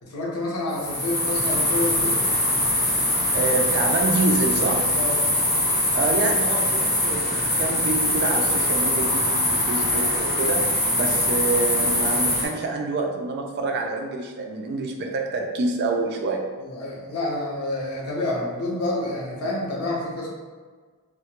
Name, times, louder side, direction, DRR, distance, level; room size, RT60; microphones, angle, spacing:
voice 1, 0.0-2.2 4.9-5.1 16.6-20.3, left 2 dB, 80° left, -3 dB, 0.7 m, -28 dB
sound 1, 0.7-12.5, left 1 dB, 45° left, 0.9 m, -22 dB
voice 2, 3.3-4.9 5.9-10.6 10.9-16.4, right 3 dB, 50° right, 2 dB, 0.3 m, -27 dB
2.2 x 2.1 x 2.8 m, 1.5 s
head